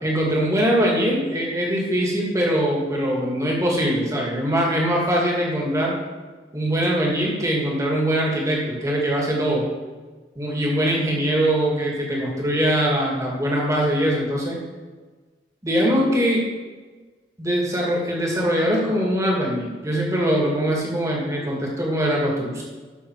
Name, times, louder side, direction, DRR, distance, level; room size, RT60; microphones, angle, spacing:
voice 1, 0.0-6.0 6.5-9.6 10.4-14.6 15.6-16.4 17.4-22.6, equal, 20° right, -3 dB, 2.3 m, -22 dB
12.5 x 5.9 x 4.8 m, 1.3 s
head